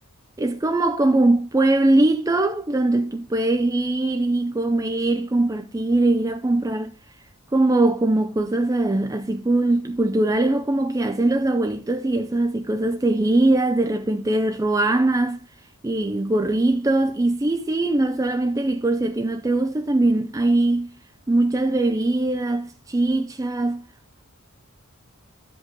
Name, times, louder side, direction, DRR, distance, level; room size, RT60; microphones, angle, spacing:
voice 1, 0.4-6.9 7.5-15.4 15.8-20.9 21.3-23.8, right 2 dB, 15° right, 0.4 m, -21 dB
12.0 x 5.2 x 3.8 m
head